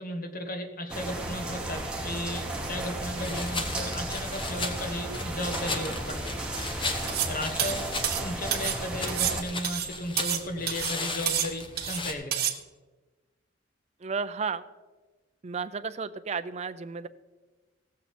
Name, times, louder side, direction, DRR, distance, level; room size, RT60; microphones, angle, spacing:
voice 1, 0.0-6.3 7.3-7.9 8.2-12.4, left 1 dB, 50° left, 6 dB, 1.2 m, -35 dB
sound 1, 0.9-9.4, right 1 dB, 5° right, 1.3 m, -34 dB
sound 2, 3.2-12.1, left 3 dB, 25° left, 1.0 m, -37 dB
sound 3, 7.1-7.3 7.6-8.8 9.1-10.4 10.7-11.0 11.3-12.0 12.3-12.6, right 10 dB, 55° right, 1.0 m, -29 dB
voice 2, 14.0-14.6 15.4-17.1, right 5 dB, 35° right, 11 dB, 0.5 m, -33 dB
16.5 x 7.4 x 4.3 m, 1.3 s
head